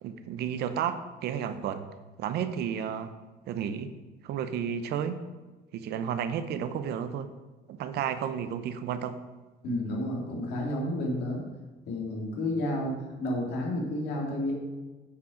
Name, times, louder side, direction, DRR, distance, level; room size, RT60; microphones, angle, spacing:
voice 1, 0.0-1.9 2.2-3.1 3.5-3.9 4.2-5.2 5.7-7.3 7.7-9.2, right 8 dB, 75° right, 10 dB, 0.7 m, -32 dB
voice 2, 9.6-11.5 11.9-14.5, left 1 dB, 80° left, -1 dB, 2.3 m, -31 dB
8.3 x 5.5 x 5.1 m, 1.2 s
cardioid pair, 110°, 17 cm